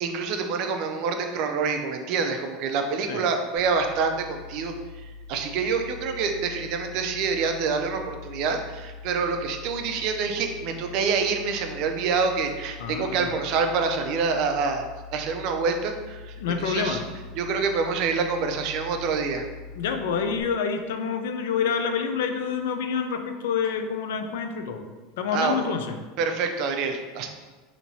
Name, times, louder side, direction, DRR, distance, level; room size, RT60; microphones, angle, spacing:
voice 1, 0.0-4.7 5.0-14.8 15.1-16.3 16.6-17.0 17.4-19.4 25.3-25.6 26.2-27.3, right 5 dB, 50° right, 5 dB, 0.4 m, -26 dB
sound 1, 3.5-20.4, left 4 dB, 50° left, 1.1 m, -43 dB
voice 2, 12.8-13.3 16.4-17.0 19.8-24.9 25.2-26.0, left 6 dB, 85° left, 6 dB, 0.4 m, -27 dB
4.4 x 2.8 x 2.7 m, 1.3 s
supercardioid pair, 145°, 0 cm